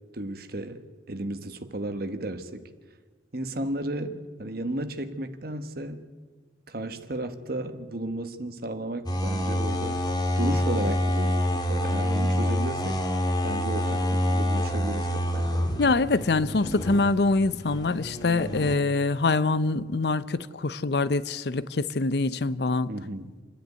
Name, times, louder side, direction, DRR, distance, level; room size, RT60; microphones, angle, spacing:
voice 1, 0.1-2.7 3.3-6.1 6.7-10.0 10.4-13.0 13.4-15.7 22.9-23.3, right 1 dB, 55° right, 1.3 m, -34 dB
sound 1, 9.1-18.8, equal, 25° left, 1.7 m, -27 dB
voice 2, 15.8-22.9, left 3 dB, 65° left, 0.6 m, -24 dB
27.5 x 10.5 x 9.4 m
head